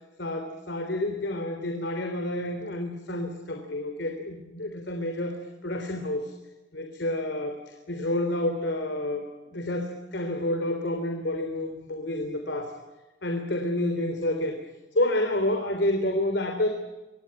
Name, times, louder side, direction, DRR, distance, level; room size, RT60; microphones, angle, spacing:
voice 1, 0.2-6.3 6.7-7.6 7.9-12.7 13.2-14.6 14.9-16.7, left 1 dB, 60° left, 5 dB, 3.5 m, -29 dB
25.5 x 19.5 x 9.7 m, 1.1 s
head